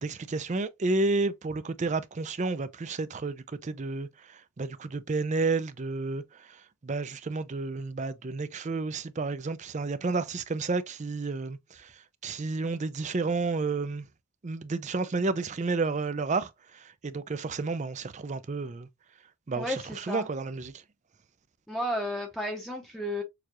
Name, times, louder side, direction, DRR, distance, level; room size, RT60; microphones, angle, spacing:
voice 1, 0.0-14.1 14.4-18.9 19.5-20.8, right 3 dB, 30° right, 0.4 m, -31 dB
voice 2, 19.5-20.3 21.7-23.2, equal, ahead, 0.8 m, -33 dB
6.6 x 2.4 x 2.9 m
head